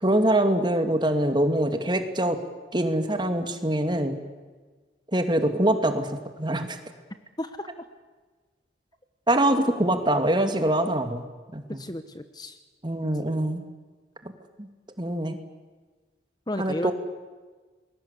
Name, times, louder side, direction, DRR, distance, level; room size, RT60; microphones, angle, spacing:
voice 1, 0.0-2.4 2.7-4.2 5.1-6.8 9.3-11.3 11.5-11.8 12.8-13.6 14.6-14.7 15.0-15.4 16.6-16.9, right 1 dB, 25° right, 7 dB, 2.3 m, -24 dB
voice 2, 7.4-7.7 11.8-12.6 16.5-16.9, left 1 dB, 20° left, 10 dB, 1.1 m, -32 dB
29.0 x 21.5 x 8.3 m, 1.4 s
head